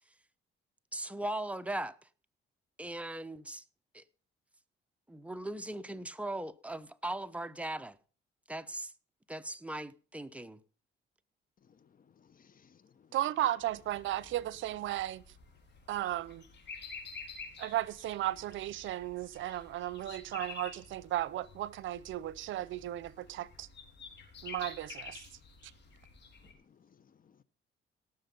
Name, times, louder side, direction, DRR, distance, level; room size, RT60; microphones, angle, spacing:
voice 1, 0.9-2.0 2.8-3.6 3.9-4.0 5.1-8.0 8.5-8.9 9.3-10.6, right 1 dB, 5° right, 0.9 m, -39 dB
voice 2, 11.7-13.1 26.4-27.4, left 7 dB, 45° left, 0.9 m, -64 dB
voice 3, 13.1-15.2 15.9-16.4 17.6-23.7 24.4-25.2, right 13 dB, 75° right, 0.6 m, -35 dB
sound 1, 13.6-26.5, left 5 dB, 60° left, 4.2 m, -50 dB
17.5 x 6.9 x 5.4 m
cardioid pair, 90°, 20 cm